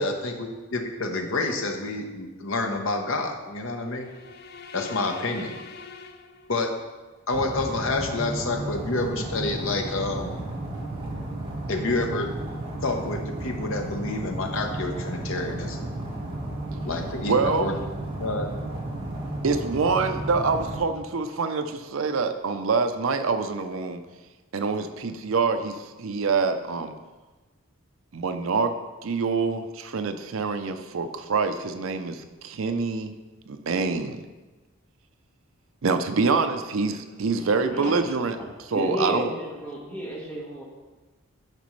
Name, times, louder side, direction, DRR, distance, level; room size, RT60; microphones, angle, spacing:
voice 1, 0.0-4.1 4.7-5.6 6.5-6.8 7.3-10.3 11.7-12.3 12.8-15.9 16.8-17.7 18.2-18.5, left 2 dB, 70° left, 3 dB, 0.9 m, -28 dB
sound 1, 3.9-7.0, left 5 dB, 45° left, 0.4 m, -43 dB
sound 2, 7.3-20.8, right 1 dB, 25° right, 1.6 m, -33 dB
voice 2, 17.3-17.7 19.4-24.0 24.5-26.9 28.1-28.7 29.0-33.1 33.5-34.2 35.8-38.4 38.7-39.3, right 4 dB, 75° right, 8 dB, 0.5 m, -25 dB
voice 3, 37.4-37.9 38.3-38.5 38.7-40.6, equal, 5° left, -5 dB, 1.5 m, -32 dB
10.5 x 5.2 x 3.2 m, 1.2 s
head